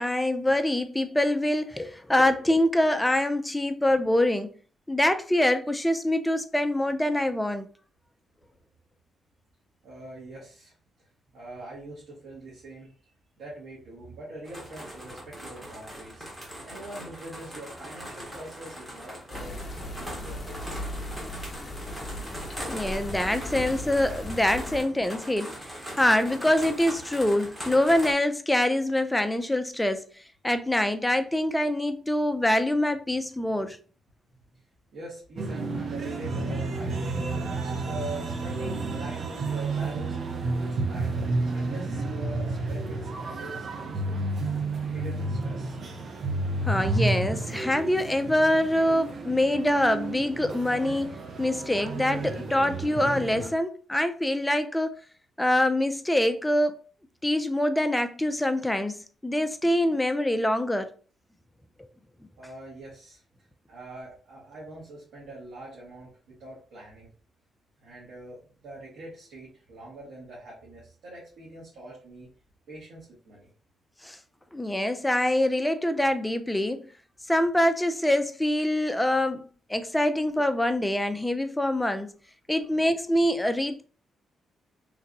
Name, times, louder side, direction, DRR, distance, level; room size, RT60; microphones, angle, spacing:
voice 1, 0.0-4.5 4.9-7.7 22.7-30.1 30.4-33.8 46.7-55.0 55.4-56.8 57.2-60.9 74.0-74.2 74.5-76.9 77.3-82.1 82.5-83.8, left 1 dB, 10° left, 0.3 m, -25 dB
voice 2, 9.8-10.7 11.3-12.9 13.4-16.2 16.6-20.8 34.3-34.6 34.9-40.3 40.6-44.1 44.8-45.8 62.4-63.2 63.7-67.1 67.8-72.3 72.7-73.5, right 2 dB, 80° right, 1.4 m, -43 dB
sound 1, 14.4-28.1, equal, 15° right, 1.2 m, -41 dB
sound 2, 19.3-24.8, left 1 dB, 30° left, 0.8 m, -37 dB
sound 3, 35.4-53.5, right 2 dB, 50° right, 0.6 m, -31 dB
3.3 x 2.9 x 2.5 m
cardioid pair, 120°, 0 cm